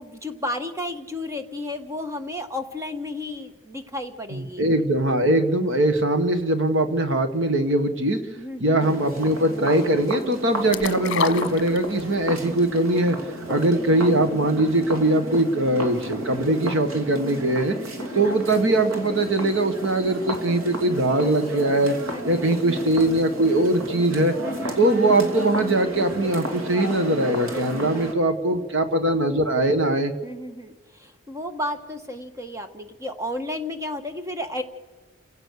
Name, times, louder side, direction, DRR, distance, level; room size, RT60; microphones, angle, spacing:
voice 1, 0.0-4.6 8.4-9.0 13.5-14.0 17.3-17.6 18.0-18.3 22.1-22.5 24.4-24.8 27.4-28.1 30.2-34.6, left 1 dB, 15° right, 7 dB, 1.4 m, -33 dB
voice 2, 4.3-8.2 8.6-13.2 13.5-17.8 18.1-21.9 22.2-24.4 24.8-30.1, right 1 dB, 60° right, 8 dB, 1.6 m, -21 dB
sound 1, 8.8-28.1, equal, 75° right, 2.7 m, -33 dB
sound 2, 10.7-12.3 12.6-12.7, left 5 dB, 55° left, 1.2 m, -27 dB
29.5 x 16.5 x 6.7 m, 1.3 s
head